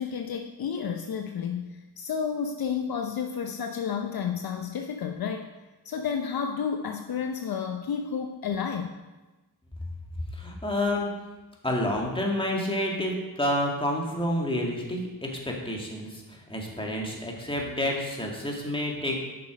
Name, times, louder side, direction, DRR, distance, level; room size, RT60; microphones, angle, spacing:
voice 1, 0.0-5.5 5.8-9.0, left 7 dB, 60° left, 5 dB, 0.7 m, -31 dB
voice 2, 10.3-11.1 11.6-19.2, left 1 dB, 15° left, -1 dB, 2.0 m, -29 dB
7.6 x 5.9 x 5.0 m, 1.1 s
cardioid pair, 60°, 41 cm